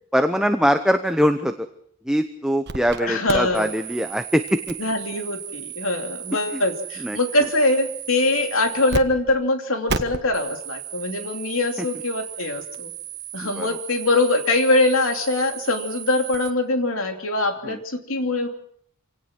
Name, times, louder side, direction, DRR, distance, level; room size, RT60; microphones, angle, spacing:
voice 1, 0.1-1.7 2.0-4.8 6.5-6.6 7.0-7.2 11.8-11.9 13.4-13.8 17.6-17.8, equal, 5° right, 7 dB, 0.8 m, -22 dB
sound 1, 2.7-3.0 3.3-9.0 9.3-9.4 9.9-16.5, right 6 dB, 50° right, 1.4 m, -34 dB
voice 2, 3.0-3.7 4.8-12.9 13.3-18.5, left 2 dB, 70° left, 4 dB, 2.9 m, -23 dB
26.5 x 18.0 x 6.1 m, 0.63 s
head